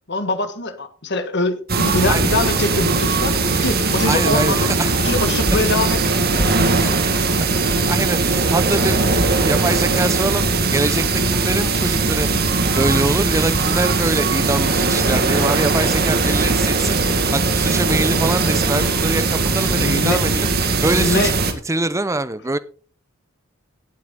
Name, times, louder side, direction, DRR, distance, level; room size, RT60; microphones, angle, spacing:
voice 1, 0.1-4.7 5.0-6.7 19.7-20.2 21.0-21.3, left 2 dB, 55° left, 9 dB, 1.6 m, -23 dB
sound 1, 1.7-21.5, right 3 dB, 45° right, 1.7 m, -19 dB
voice 2, 4.1-4.9 5.5-5.6 6.5-7.1 7.4-7.5 7.9-12.3 12.7-17.0 17.3-20.5 20.8-21.3 21.7-22.6, right 2 dB, 15° right, 13 dB, 0.7 m, -24 dB
17.5 x 8.1 x 3.8 m, 0.40 s
head